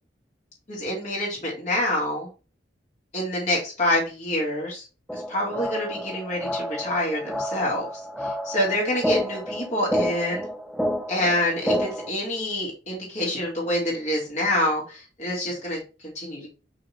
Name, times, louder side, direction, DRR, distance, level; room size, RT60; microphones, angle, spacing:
voice 1, 0.7-2.3 3.1-4.8 5.1-7.9 8.2-10.5 11.1-16.5, left 1 dB, 40° left, -4 dB, 2.4 m, -27 dB
sound 1, 5.1-12.1, equal, ahead, 0.5 m, -30 dB
5.6 x 4.0 x 4.3 m, 0.32 s
head